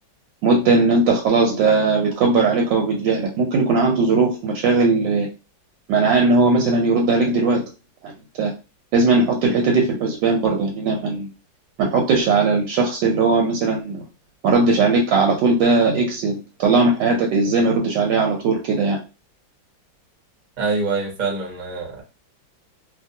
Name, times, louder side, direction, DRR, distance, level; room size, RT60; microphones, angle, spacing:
voice 1, 0.4-5.3 5.9-7.6 8.0-8.1 8.4-8.5 8.9-11.3 11.8-14.0 14.4-19.0, right 3 dB, 80° right, 1 dB, 1.3 m, -18 dB
voice 2, 20.6-22.0, right 4 dB, 40° right, -1 dB, 0.6 m, -25 dB
2.8 x 2.5 x 2.6 m, 0.29 s
omnidirectional pair, 2.1 m